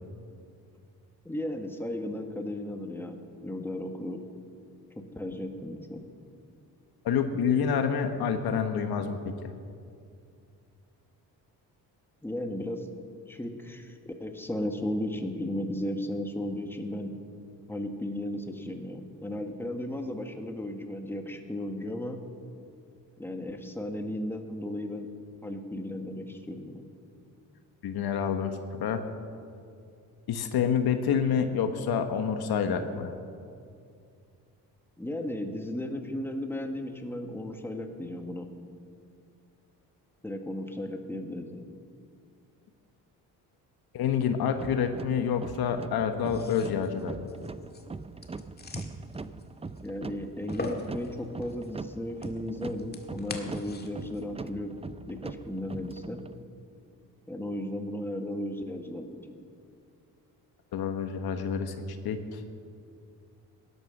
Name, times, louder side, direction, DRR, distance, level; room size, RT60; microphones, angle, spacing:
voice 1, 1.2-4.2 4.9-6.1 12.2-12.9 13.3-17.1 17.7-22.2 23.2-25.1 25.4-26.8 35.0-38.5 40.2-41.7 49.8-56.2 57.3-59.3, left 1 dB, 5° left, 4 dB, 1.7 m, -35 dB
voice 2, 7.0-9.5 27.8-28.5 28.8-29.0 30.3-33.1 43.9-47.3 60.7-61.7 62.0-62.4, left 7 dB, 70° left, 7 dB, 1.3 m, -28 dB
sound 1, 44.5-56.4, right 4 dB, 15° right, 0.5 m, -42 dB
sound 2, 46.2-54.2, left 2 dB, 25° left, 1.8 m, -43 dB
17.0 x 11.0 x 6.5 m, 2.4 s
cardioid pair, 80°, 39 cm